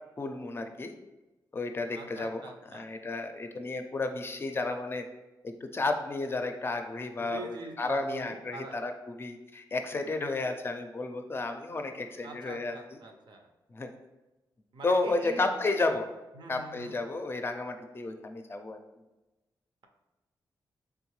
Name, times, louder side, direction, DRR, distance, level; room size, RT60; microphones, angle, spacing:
voice 1, 0.2-0.9 1.5-2.4 2.7-5.1 5.4-12.8 13.7-13.9 14.8-16.0 16.5-18.8, left 3 dB, 30° left, 6 dB, 0.4 m, -32 dB
voice 2, 1.9-2.9 7.2-8.8 12.2-13.5 14.7-15.9 16.3-17.0, right 3 dB, 70° right, 3 dB, 0.6 m, -44 dB
3.5 x 3.4 x 3.1 m, 1.1 s
cardioid pair, 70°, 8 cm